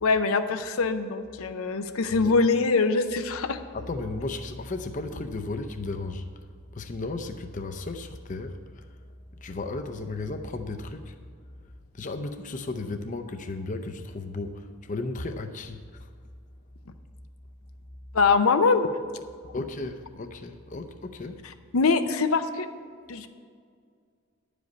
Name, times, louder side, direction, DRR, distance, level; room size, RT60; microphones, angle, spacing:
voice 1, 0.0-3.6 18.1-18.9 21.7-22.7 23.1-23.3, left 4 dB, 80° left, 8 dB, 0.6 m, -23 dB
voice 2, 3.7-6.5 6.7-9.0 9.4-11.2 11.9-16.1 19.5-21.4, left 2 dB, 35° left, 6 dB, 0.6 m, -35 dB
10.5 x 5.2 x 8.3 m, 2.1 s
head